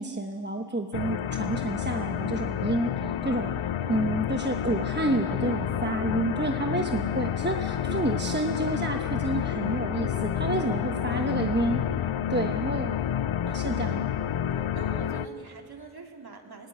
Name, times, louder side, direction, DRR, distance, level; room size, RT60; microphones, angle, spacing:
voice 1, 0.0-3.5 3.9-12.9 13.5-14.1, right 2 dB, 20° right, 4 dB, 1.1 m, -29 dB
sound 1, 0.9-15.3, left 9 dB, 90° left, 0.6 m, -29 dB
voice 2, 3.8-4.3 11.1-11.6 13.5-14.2 14.5-16.7, right 4 dB, 50° right, 2 dB, 2.8 m, -46 dB
sound 2, 7.2-7.4 8.0-12.2 12.6-13.6 13.9-15.4, equal, 15° left, 3.7 m, -47 dB
17.5 x 17.0 x 9.8 m, 2.5 s
cardioid pair, 45°, 47 cm